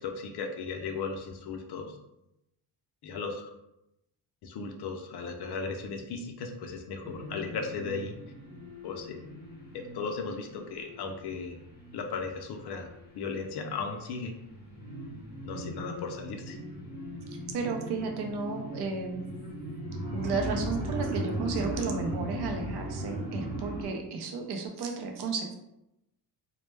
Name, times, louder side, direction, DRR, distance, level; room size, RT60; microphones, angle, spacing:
voice 1, 0.0-2.0 3.0-3.5 4.4-8.1 8.8-9.2 9.7-11.6 11.9-12.9 13.2-14.3 15.4-16.6, left 4 dB, 55° left, 3 dB, 0.5 m, -36 dB
sound 1, 7.0-14.0 14.3-23.8, equal, 20° left, 0.7 m, -38 dB
voice 2, 17.5-19.2 20.1-25.5, right 4 dB, 55° right, 2 dB, 0.6 m, -33 dB
2.1 x 2.0 x 3.2 m, 0.86 s
cardioid pair, 115°, 47 cm